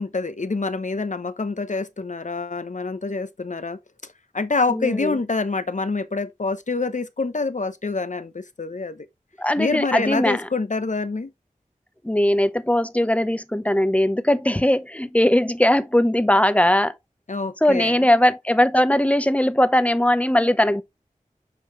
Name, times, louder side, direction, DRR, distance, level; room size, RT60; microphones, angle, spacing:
voice 1, 0.0-3.8 4.3-9.1 9.6-11.3 17.3-18.1, left 3 dB, 60° left, 0.9 m, -26 dB
voice 2, 4.7-5.2 9.4-10.5 12.0-16.9 17.6-20.8, left 1 dB, 10° left, 0.8 m, -19 dB
7.8 x 4.7 x 3.1 m
wide cardioid pair, 50°, 14 cm